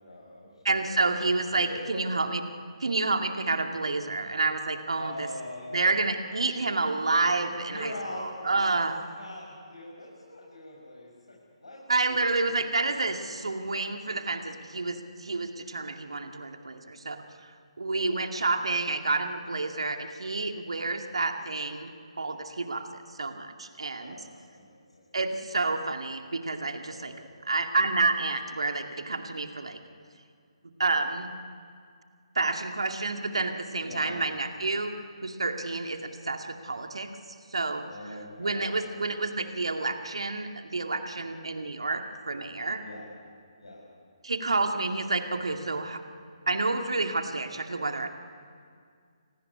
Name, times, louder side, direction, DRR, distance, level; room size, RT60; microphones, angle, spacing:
voice 1, 0.0-1.0 1.5-2.1 4.9-5.9 7.7-12.6 13.2-13.3 24.0-25.0 26.8-27.3 33.8-34.2 37.9-39.2 42.8-43.1 43.6-43.9, left 1 dB, 70° left, -3 dB, 6.4 m, -42 dB
voice 2, 0.6-2.4 2.8-5.3 5.7-8.9 11.9-17.5 17.8-21.9 22.2-24.2 25.1-27.1 27.4-29.8 30.8-31.3 32.3-37.1 37.5-37.8 38.4-42.8 44.2-46.0 46.5-48.1, right 3 dB, 65° right, 5 dB, 2.3 m, -29 dB
29.0 x 19.0 x 9.8 m, 2.2 s
figure-of-eight pair, 140°, 3 cm